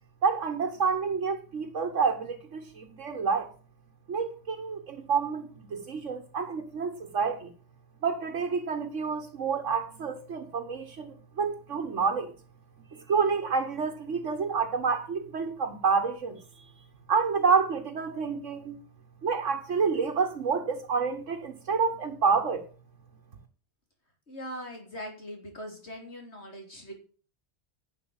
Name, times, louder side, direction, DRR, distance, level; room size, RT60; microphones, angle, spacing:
voice 1, 0.2-3.5 4.1-7.5 8.0-12.3 12.9-16.7 17.1-18.8 19.2-22.6, right 5 dB, 85° right, 1.6 m, -28 dB
voice 2, 24.3-26.9, equal, 65° left, 3.7 m, -41 dB
11.5 x 6.6 x 8.8 m
omnidirectional pair, 1.2 m